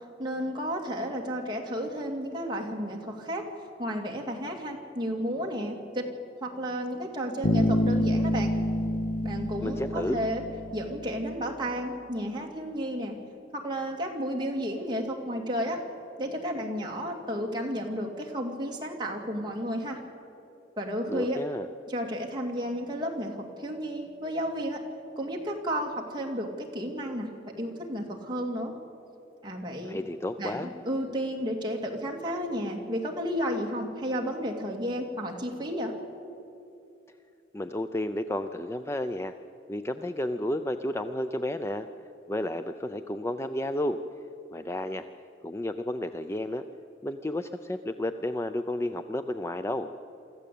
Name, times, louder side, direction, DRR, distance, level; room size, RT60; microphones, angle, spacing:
voice 1, 0.2-3.4 3.8-6.1 6.4-8.5 9.2-10.4 10.7-13.2 13.5-15.8 16.2-20.0 20.8-21.4 21.9-24.8 25.2-27.3 27.6-28.7 29.4-30.0 30.4-35.9, equal, 25° right, 0 dB, 2.4 m, -32 dB
Bass guitar, 7.4-11.1, left 1 dB, 45° left, 0.8 m, -27 dB
voice 2, 9.6-10.2 21.1-21.7 29.8-30.7 37.5-39.3 39.7-41.9 42.3-44.0 44.5-45.1 45.4-46.6 47.0-49.9, left 1 dB, 15° left, 9 dB, 0.5 m, -32 dB
24.5 x 14.0 x 8.5 m, 2.7 s
head